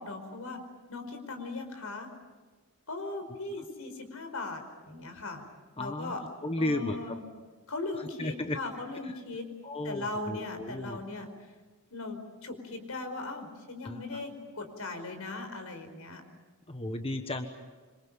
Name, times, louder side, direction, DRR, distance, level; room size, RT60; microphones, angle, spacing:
voice 1, 0.0-2.1 2.9-4.6 4.9-5.4 5.8-6.2 6.6-7.2 7.7-9.5 9.8-11.3 11.9-16.2, left 2 dB, 80° left, 5 dB, 5.1 m, -38 dB
voice 2, 5.8-6.1 6.4-7.1 8.2-8.6 9.6-11.0 13.8-14.0 16.7-17.5, left 1 dB, 25° left, 6 dB, 1.3 m, -34 dB
26.5 x 26.5 x 7.5 m, 1.3 s
head